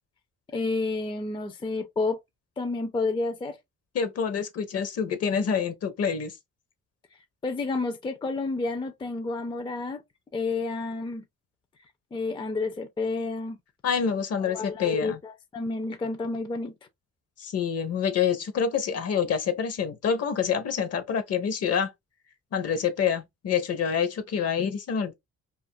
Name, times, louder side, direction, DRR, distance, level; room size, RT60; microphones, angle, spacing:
voice 1, 0.5-2.2 2.6-3.6 7.4-10.0 10.3-11.2 12.1-13.6 14.4-16.7, left 3 dB, 15° left, 0.4 m, -30 dB
voice 2, 3.9-6.3 13.8-15.2 17.4-21.9 22.5-25.1, left 7 dB, 55° left, 0.7 m, -27 dB
2.4 x 2.4 x 2.5 m
cardioid pair, 90°, 30 cm